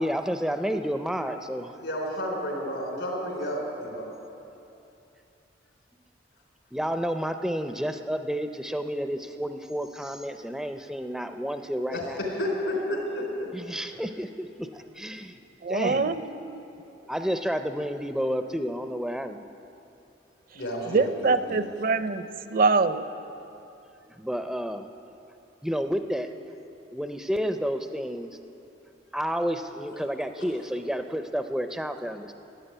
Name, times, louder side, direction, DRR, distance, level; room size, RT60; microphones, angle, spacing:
voice 1, 0.0-1.7 6.7-12.2 13.5-15.4 15.7-16.1 17.1-19.4 24.2-24.9 25.6-26.3 26.9-28.4 29.1-32.3, equal, ahead, 7 dB, 0.4 m, -30 dB
voice 2, 1.8-4.1 11.9-12.1 12.4-13.5 17.0-17.1 20.5-21.7 29.9-30.0 30.4-30.5, equal, 80° left, 0 dB, 3.7 m, -31 dB
voice 3, 15.6-16.6 20.5-20.6 20.9-23.1, right 4 dB, 55° right, 11 dB, 0.6 m, -25 dB
13.5 x 8.4 x 9.9 m, 2.8 s
head